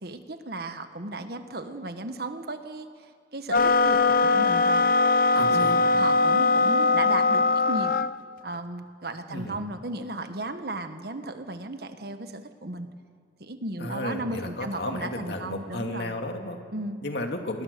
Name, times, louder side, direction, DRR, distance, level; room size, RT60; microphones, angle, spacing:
voice 1, 0.0-2.9 3.3-4.9 5.3-8.0 8.4-12.9 13.4-16.1 16.7-17.0, right 2 dB, 60° right, 8 dB, 1.5 m, -35 dB
sound 1, 3.5-8.1, left 3 dB, 55° left, 0.6 m, -21 dB
voice 2, 5.4-5.7 9.3-9.6 13.8-16.6 17.0-17.6, left 1 dB, 70° left, 4 dB, 2.4 m, -33 dB
27.5 x 20.5 x 6.9 m, 2.1 s
head